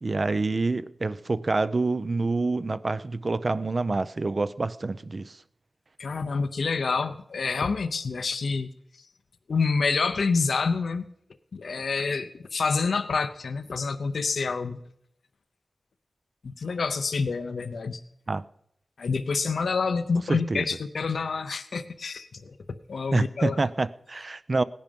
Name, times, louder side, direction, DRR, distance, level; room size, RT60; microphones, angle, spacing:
voice 1, 0.0-5.4 18.3-18.4 20.3-20.7 23.1-24.6, right 3 dB, 50° right, 0.6 m, -27 dB
voice 2, 6.0-8.7 9.0-9.1 9.5-11.0 11.5-14.8 16.4-18.0 19.0-23.6, left 4 dB, 85° left, 0.7 m, -27 dB
17.0 x 10.5 x 5.3 m
wide cardioid pair, 60°, 0 cm